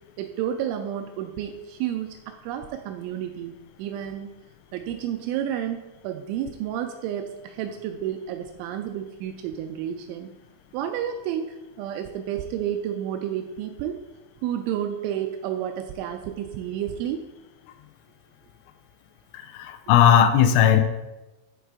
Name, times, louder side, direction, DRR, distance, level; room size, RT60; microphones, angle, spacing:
voice 1, 0.2-4.3 4.7-10.3 10.7-14.0 14.4-17.3, right 10 dB, 85° right, 5 dB, 2.8 m, -31 dB
voice 2, 19.5-20.8, left 9 dB, 80° left, 7 dB, 2.7 m, -17 dB
11.0 x 4.7 x 3.5 m, 1.0 s
omnidirectional pair, 5.6 m